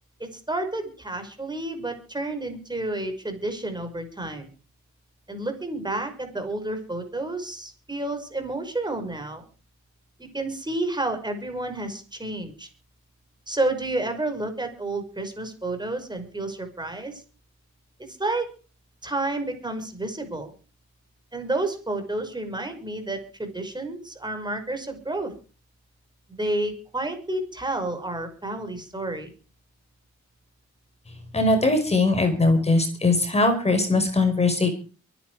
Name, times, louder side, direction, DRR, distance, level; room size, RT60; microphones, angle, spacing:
voice 1, 0.2-4.5 5.3-9.4 10.3-12.7 13.5-17.2 18.0-18.5 19.0-20.5 21.3-25.3 26.3-29.3, right 2 dB, 15° right, 6 dB, 5.6 m, -30 dB
voice 2, 31.3-34.7, left 2 dB, 20° left, 6 dB, 5.0 m, -20 dB
23.5 x 10.5 x 4.8 m, 0.37 s
cardioid pair, 90°, 30 cm